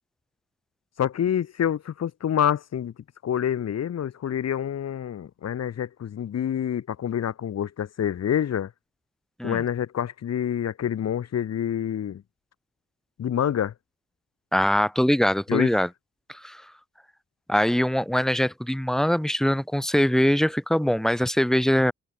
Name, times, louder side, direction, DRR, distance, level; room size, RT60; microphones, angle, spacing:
voice 1, 1.0-2.9 3.2-8.7 9.4-12.2 13.2-13.7 15.5-15.7, left 9 dB, 60° left, 2.9 m, -27 dB
voice 2, 14.5-15.9 16.3-16.6 17.5-21.9, equal, ahead, 3.8 m, -22 dB
cardioid pair, 90°, 30 cm